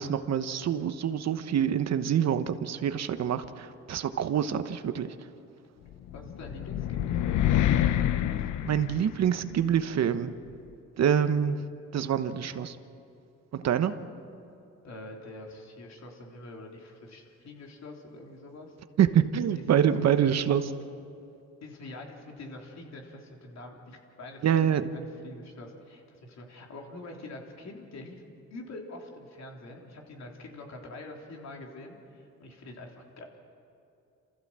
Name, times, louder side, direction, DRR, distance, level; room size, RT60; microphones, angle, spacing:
voice 1, 0.0-5.1 8.7-10.3 11.0-11.6 11.9-12.8 13.5-14.0 19.0-20.6 24.4-24.9, right 9 dB, 60° right, 10 dB, 1.1 m, -26 dB
sound 1, 6.1-9.5, left 11 dB, 80° left, 0.9 m, -27 dB
voice 2, 6.1-7.4 14.8-18.8 19.6-19.7 20.2-20.3 21.6-28.2 28.5-33.3, left 2 dB, 60° left, 1 dB, 3.6 m, -45 dB
28.0 x 15.0 x 7.6 m, 2.7 s
cardioid pair, 90°, 30 cm